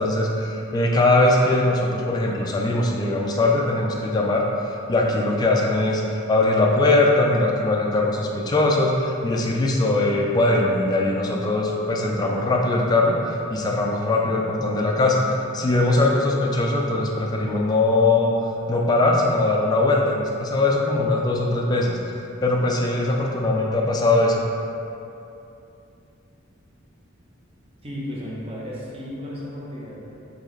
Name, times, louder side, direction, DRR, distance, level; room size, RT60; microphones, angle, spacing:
voice 1, 0.0-4.4 4.9-24.4, left 2 dB, 20° left, -2 dB, 0.3 m, -21 dB
voice 2, 27.8-30.1, equal, 30° right, -5 dB, 0.7 m, -34 dB
3.9 x 3.1 x 3.1 m, 2.7 s
head